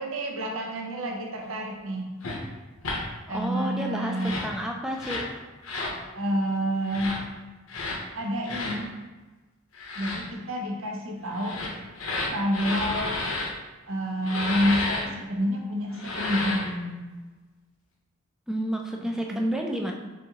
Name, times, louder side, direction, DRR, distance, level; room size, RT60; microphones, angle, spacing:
voice 1, 0.0-2.1 3.3-4.4 6.1-7.2 8.1-8.9 10.0-11.6 12.3-13.2 13.8-17.0 19.0-19.4, equal, 65° right, 1 dB, 0.7 m, -29 dB
sound 1, 2.2-2.4 2.8-3.0 4.1-4.5 5.0-5.3 5.6-6.0 6.8-7.2 7.7-8.0 8.5-8.8 9.7-10.2 11.3-13.5 14.2-15.0 15.9-16.7, left 2 dB, 75° left, 0.8 m, -31 dB
voice 2, 3.3-4.1 4.4-5.3 18.5-19.9, equal, 5° right, 1 dB, 0.3 m, -30 dB
4.1 x 3.6 x 2.9 m, 1.2 s
head